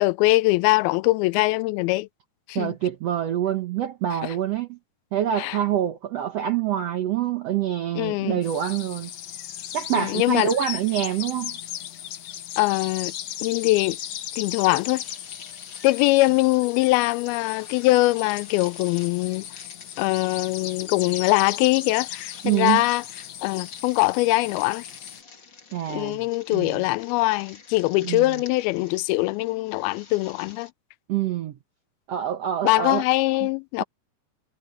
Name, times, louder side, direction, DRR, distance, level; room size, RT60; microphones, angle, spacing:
voice 1, 0.0-2.1 2.5-2.7 4.2-4.3 5.4-5.6 8.0-8.4 10.0-10.5 12.6-13.1 13.4-14.0 14.4-15.0 15.8-19.4 20.0-23.0 23.4-24.8 25.9-30.7 32.6-33.8, left 21 dB, 90° left, 2.4 m, -22 dB
voice 2, 2.5-4.8 5.1-9.1 9.7-11.5 22.4-22.8 25.7-26.2 26.5-26.8 28.0-28.4 31.1-31.6 32.1-33.0, right 11 dB, 75° right, 1.4 m, -26 dB
sound 1, 8.4-25.2, left 11 dB, 65° left, 1.8 m, -37 dB
sound 2, 14.6-30.7, left 5 dB, 35° left, 2.7 m, -49 dB
omnidirectional pair, 4.3 m